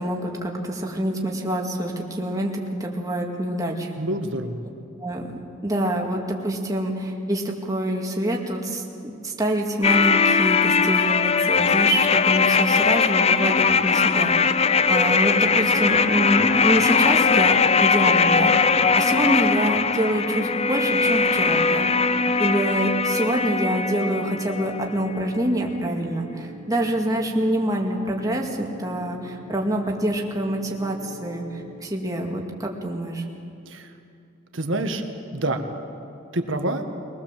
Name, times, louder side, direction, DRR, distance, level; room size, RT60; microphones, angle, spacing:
voice 1, 0.0-4.0 5.0-5.3 5.6-14.6 14.9-21.9 22.4-33.2, right 1 dB, 15° right, 0 dB, 2.1 m, -26 dB
voice 2, 4.0-4.6 33.7-33.9 34.5-35.0 35.3-35.6 36.3-36.8, right 1 dB, 65° right, 5 dB, 1.7 m, -26 dB
sound 1, 9.8-24.8 25.1-25.2, left 5 dB, 30° left, 0.5 m, -20 dB
sound 2, 14.7-31.8, right 1 dB, 60° left, 4.3 m, -42 dB
23.0 x 19.5 x 7.5 m, 2.7 s
head